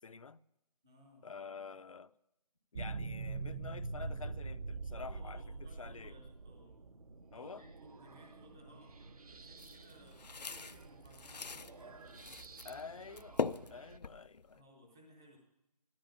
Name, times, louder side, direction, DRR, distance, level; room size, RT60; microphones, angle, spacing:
voice 1, 0.0-0.4 1.2-2.1 2.7-6.2 7.3-7.6 12.6-13.4 13.7-14.6, left 5 dB, 55° left, 0.6 m, -48 dB
voice 2, 0.8-1.2 4.9-6.8 7.3-9.0 9.3-13.0 14.5-15.4, equal, 5° right, 0.5 m, -60 dB
sound 1, 2.8-14.0, right 3 dB, 65° right, 1.1 m, -46 dB
sound 2, 9.6-11.7 12.1-12.8 13.1-14.6, left 5 dB, 90° left, 0.7 m, -40 dB
14.0 x 13.0 x 7.3 m
figure-of-eight pair, 170°, 20 cm